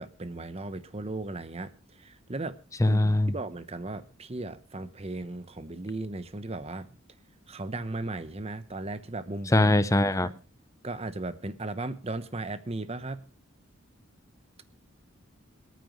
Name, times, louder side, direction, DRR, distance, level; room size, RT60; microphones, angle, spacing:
voice 1, 0.0-2.6 2.8-6.9 7.5-9.7 10.2-10.4 10.8-13.2, right 2 dB, 30° right, 1.0 m, -36 dB
voice 2, 2.8-3.3 9.5-10.3, left 1 dB, 15° left, 0.6 m, -22 dB
27.0 x 9.3 x 3.1 m
head